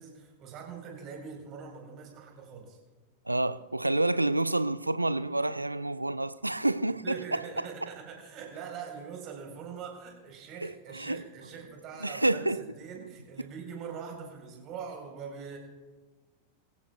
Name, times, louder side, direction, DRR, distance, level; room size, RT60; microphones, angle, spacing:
voice 1, 0.0-2.8 7.0-12.5 12.8-15.6, right 6 dB, 35° right, 4.2 m, -43 dB
voice 2, 3.3-7.7 10.6-11.2 12.0-12.6, right 2 dB, 85° right, 0.4 m, -29 dB
22.5 x 16.5 x 2.4 m
figure-of-eight pair, 90°, 0 cm